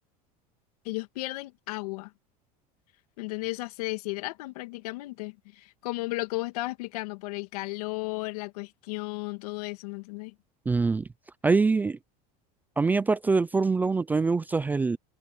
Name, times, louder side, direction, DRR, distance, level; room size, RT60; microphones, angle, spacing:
voice 1, 0.8-2.1 3.2-10.3, left 22 dB, 85° left, 2.4 m, -34 dB
voice 2, 10.7-11.1 11.4-12.0 12.8-15.0, right 4 dB, 10° right, 0.4 m, -24 dB
cardioid pair, 155°, 19 cm